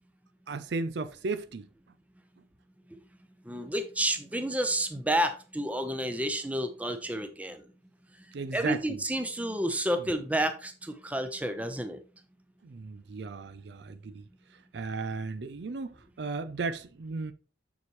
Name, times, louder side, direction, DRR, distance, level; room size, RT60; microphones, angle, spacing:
voice 1, 0.5-1.7 8.3-9.0 10.0-10.1 12.6-14.2 14.5-17.3, right 4 dB, 60° right, 0.5 m, -35 dB
voice 2, 3.5-7.6 8.5-12.0, right 1 dB, 10° right, 0.7 m, -30 dB
7.1 x 6.9 x 3.1 m
head